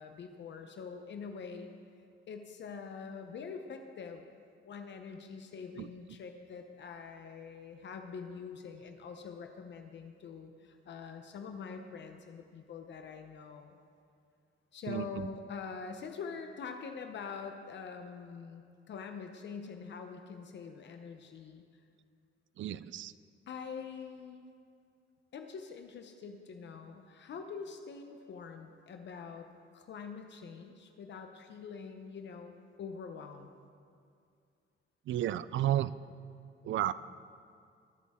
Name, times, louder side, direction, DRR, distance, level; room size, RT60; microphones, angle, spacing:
voice 1, 0.0-1.7 2.3-4.2 4.6-13.8 14.7-21.6 23.5-24.5 25.3-29.5 29.7-32.5 32.8-33.5, left 5 dB, 60° left, 5 dB, 0.8 m, -45 dB
voice 2, 14.9-15.3 22.6-23.1 35.1-35.9 36.6-36.9, right 12 dB, 70° right, 17 dB, 0.4 m, -32 dB
22.0 x 8.3 x 3.7 m, 2.3 s
cardioid pair, 135°, 21 cm